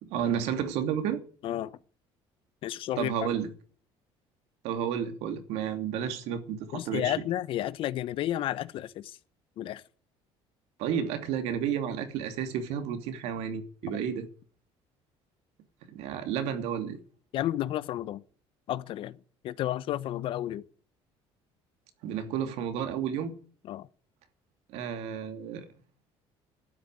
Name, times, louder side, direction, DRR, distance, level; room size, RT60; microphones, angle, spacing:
voice 1, 0.0-1.2 3.0-3.5 4.6-7.1 10.8-14.3 15.9-17.0 22.0-23.3 24.7-25.6, right 8 dB, 75° right, 2.8 m, -31 dB
voice 2, 1.4-1.8 2.6-3.2 6.7-9.2 9.6-9.8 17.3-18.2 18.7-19.2 19.4-20.6 23.7-23.9, left 13 dB, 55° left, 0.9 m, -32 dB
12.5 x 9.7 x 9.0 m
cardioid pair, 155°, 11 cm